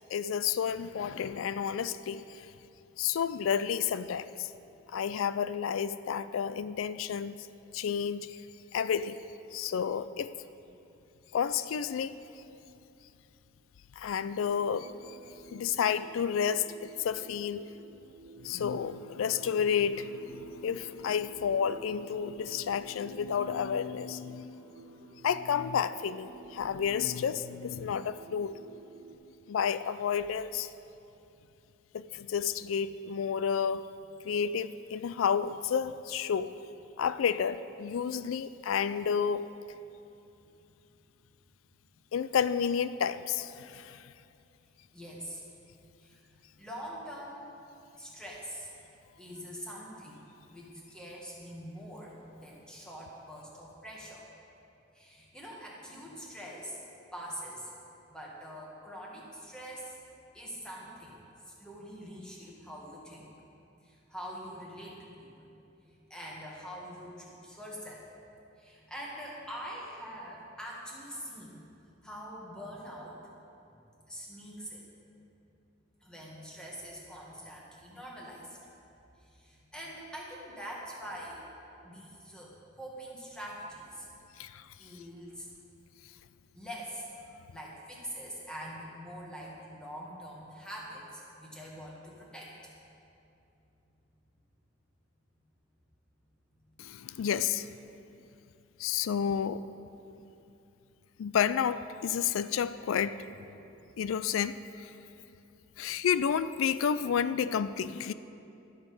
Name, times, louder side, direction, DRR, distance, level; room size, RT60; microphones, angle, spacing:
voice 1, 0.1-2.5 3.0-4.5 4.9-7.4 7.7-8.4 8.7-9.2 9.5-10.3 11.3-12.2 14.0-15.2 15.5-17.7 18.4-24.7 25.1-28.5 29.5-30.7 31.9-33.9 34.2-36.5 37.0-39.5 42.1-44.1 84.4-84.7 96.8-97.7 98.8-99.6 101.2-103.2 104.0-104.9 105.8-108.1, left 7 dB, 85° left, 14 dB, 0.4 m, -31 dB
sound 1, 14.4-29.2, right 3 dB, 70° right, 1.0 m, -53 dB
voice 2, 44.9-45.4 46.0-46.3 46.6-47.5 47.9-48.7 49.2-54.2 54.9-56.8 57.1-57.7 58.1-60.0 60.3-63.3 63.8-65.5 65.8-68.1 68.6-71.6 72.0-73.2 74.1-74.9 76.0-78.6 79.2-81.4 81.8-84.1 84.8-85.5 86.5-87.1 87.5-92.7 105.9-106.0, equal, 5° left, -4 dB, 1.6 m, -44 dB
12.0 x 6.7 x 5.4 m, 2.8 s
head